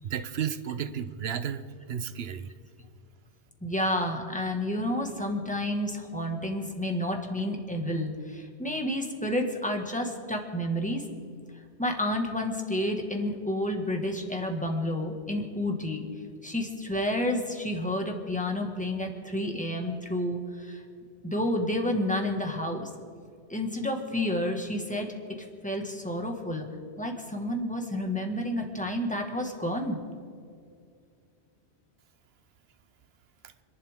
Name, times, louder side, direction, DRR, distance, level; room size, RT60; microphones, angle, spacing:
voice 1, 0.0-1.6 1.9-2.5, right 8 dB, 65° right, 12 dB, 1.0 m, -32 dB
voice 2, 3.6-11.0 11.8-16.0 16.4-20.8 21.2-22.9 23.5-25.1 25.6-26.7 27.0-30.0, left 1 dB, 5° left, 2 dB, 1.8 m, -30 dB
30.0 x 11.5 x 3.7 m, 2.3 s
omnidirectional pair, 1.1 m